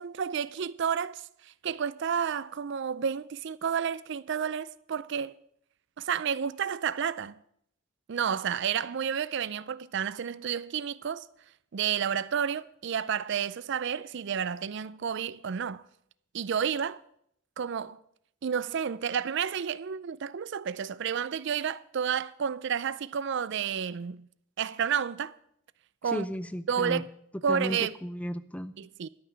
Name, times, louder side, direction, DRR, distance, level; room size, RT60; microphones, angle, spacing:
voice 1, 0.0-5.4 6.0-7.3 8.1-11.3 11.7-15.8 16.3-17.0 17.6-18.0 18.4-24.3 24.6-25.3 26.0-26.3 26.7-27.1 27.4-27.9 28.8-29.1, right 7 dB, 55° right, 0.4 m, -31 dB
voice 2, 26.1-27.0 27.5-28.7, equal, 5° left, 0.4 m, -34 dB
12.5 x 5.9 x 8.6 m
head